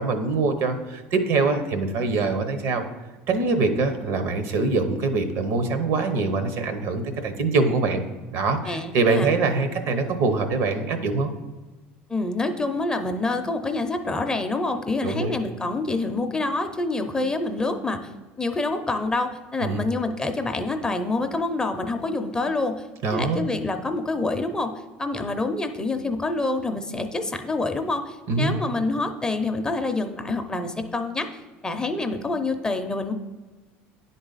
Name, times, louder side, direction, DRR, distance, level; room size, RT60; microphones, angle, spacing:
voice 1, 0.0-2.8 3.3-8.0 8.3-11.3 15.0-15.3 19.6-19.8 23.0-23.5 28.3-28.6, right 3 dB, 65° right, 8 dB, 0.9 m, -24 dB
voice 2, 8.6-9.3 12.1-18.1 18.4-22.8 23.1-24.7 25.0-31.3 31.6-33.1, left 2 dB, 15° left, 6 dB, 0.5 m, -27 dB
9.7 x 4.0 x 4.0 m, 1.2 s
supercardioid pair, 105°, 5 cm